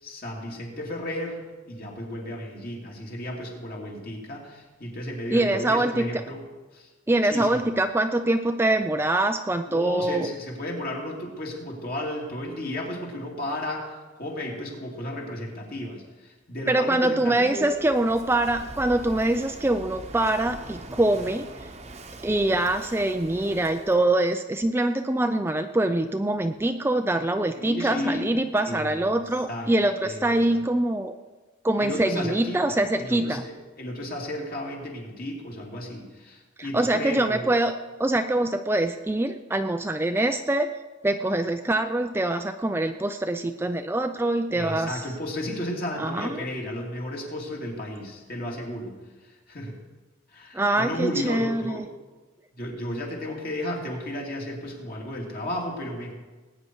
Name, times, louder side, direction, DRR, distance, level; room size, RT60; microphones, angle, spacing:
voice 1, 0.0-6.4 6.7-6.9 7.3-7.6 9.7-17.7 27.6-28.3 28.7-29.2 29.5-29.7 30.0-30.6 31.8-37.5 44.5-49.0 49.5-49.8 50.3-51.8 52.5-56.1, left 1 dB, 45° left, -2 dB, 2.9 m, -33 dB
voice 2, 5.3-6.2 7.1-10.3 16.7-21.7 22.2-31.1 31.6-33.4 36.6-40.7 41.0-45.0 46.0-46.4 50.5-51.9, right 1 dB, 10° right, 7 dB, 0.4 m, -24 dB
Walk footsteps / Wind / Waves surf, 17.5-24.1, right 2 dB, 35° right, 1.0 m, -42 dB
19.5 x 9.3 x 4.6 m, 1.3 s
head